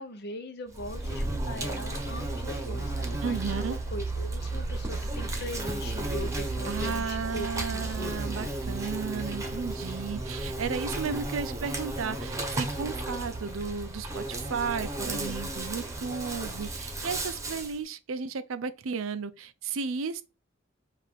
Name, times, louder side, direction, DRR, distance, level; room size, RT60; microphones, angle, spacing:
voice 1, 0.0-8.5, left 1 dB, 55° left, 0.8 m, -40 dB
Insect, 0.7-17.8, right 2 dB, 15° right, 1.0 m, -33 dB
voice 2, 3.2-3.8 6.7-20.2, right 5 dB, 90° right, 0.5 m, -34 dB
5.4 x 2.5 x 3.3 m
head